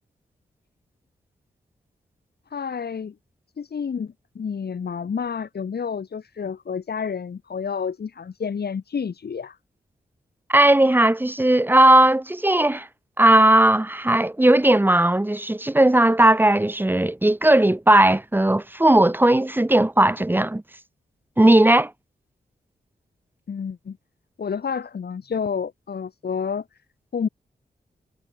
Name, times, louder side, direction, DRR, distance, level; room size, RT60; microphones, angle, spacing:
voice 1, 2.5-3.1 3.6-9.6 23.5-24.0 24.4-26.7 27.1-27.3, left 6 dB, 70° left, 4.3 m, -29 dB
voice 2, 10.5-12.9 13.2-20.6 21.4-21.9, right 1 dB, 10° right, 1.1 m, -17 dB
wide cardioid pair, 100°, 17 cm